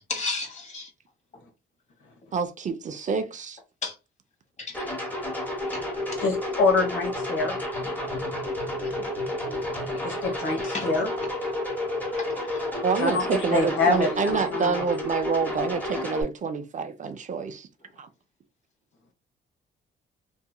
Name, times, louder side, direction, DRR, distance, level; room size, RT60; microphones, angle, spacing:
voice 1, 0.1-0.9 3.8-3.9 4.6-4.9 5.7-5.8 7.8-8.2 8.7-9.1 10.0-10.1 10.5-10.9 12.1-12.6, left 3 dB, 35° left, 1.1 m, -35 dB
voice 2, 2.3-3.6 12.8-17.7 18.0-18.1, right 5 dB, 40° right, 0.4 m, -27 dB
sound 1, 4.7-16.2, left 1 dB, 10° left, 1.0 m, -31 dB
voice 3, 6.2-7.5 9.5-9.6 10.0-11.1 13.0-13.2 13.5-14.8, left 3 dB, 75° left, 1.0 m, -25 dB
2.8 x 2.6 x 2.2 m
cardioid pair, 90°, 20 cm